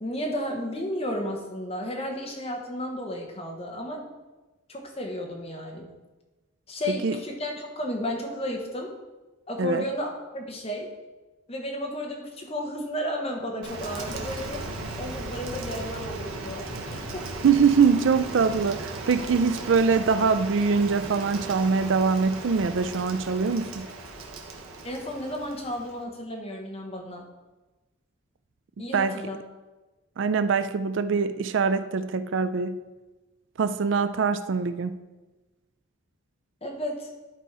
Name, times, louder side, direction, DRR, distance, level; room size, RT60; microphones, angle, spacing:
voice 1, 0.0-4.0 4.7-5.9 6.7-8.9 9.5-10.9 11.5-14.6 15.0-16.7 16.9-17.3 24.8-27.3 28.8-29.4 36.6-37.1, equal, 30° left, 1 dB, 1.2 m, -33 dB
voice 2, 6.9-7.2 9.6-9.8 17.4-23.9 28.9-29.2 30.2-32.8 33.6-35.0, right 5 dB, 60° right, 12 dB, 0.4 m, -23 dB
Rain, 13.6-26.0, right 2 dB, 85° right, 1.1 m, -37 dB
11.0 x 4.3 x 4.7 m, 1.2 s
head